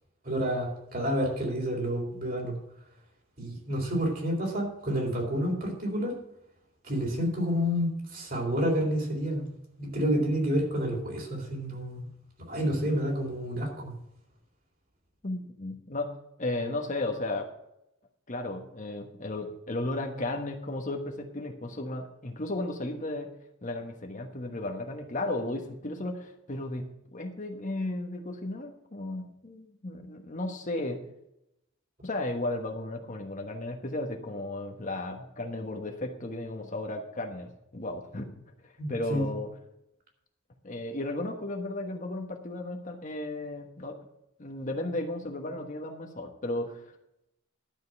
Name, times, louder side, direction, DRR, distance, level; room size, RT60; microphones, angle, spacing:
voice 1, 0.2-2.6 3.4-6.2 6.8-9.4 9.8-12.1 12.5-13.9 38.8-39.2, equal, 45° right, 0 dB, 3.7 m, -29 dB
voice 2, 15.2-16.1 16.4-17.5 18.3-23.3 23.6-26.8 27.1-31.0 32.0-39.5 40.6-44.0 44.4-46.9, left 2 dB, 40° left, 4 dB, 1.2 m, -34 dB
12.0 x 5.3 x 7.8 m, 0.81 s
head